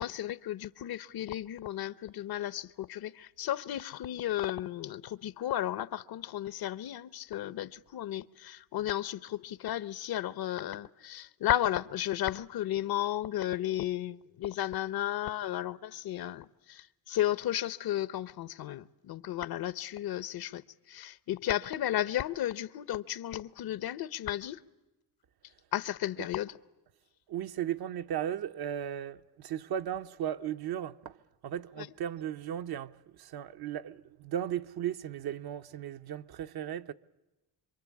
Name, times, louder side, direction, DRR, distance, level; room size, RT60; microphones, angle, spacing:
voice 1, 0.0-24.6 25.7-26.6 31.8-31.9, left 12 dB, 65° left, 0.9 m, -34 dB
voice 2, 27.3-31.2 31.4-36.9, right 10 dB, 65° right, 0.9 m, -36 dB
26.0 x 24.0 x 8.4 m
cardioid pair, 110°, 40 cm